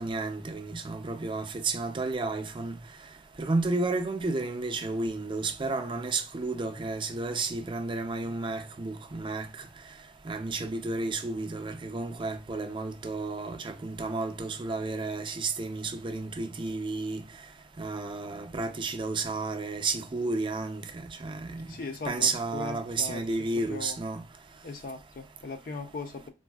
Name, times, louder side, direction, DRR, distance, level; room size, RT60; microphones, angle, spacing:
voice 1, 0.0-2.8 3.4-9.5 10.3-17.2 17.8-20.8 21.2-21.6 22.1-24.2, right 3 dB, 25° right, 0.4 m, -32 dB
voice 2, 21.7-24.0 24.6-26.3, left 3 dB, 50° left, 0.4 m, -39 dB
3.9 x 2.5 x 2.3 m
head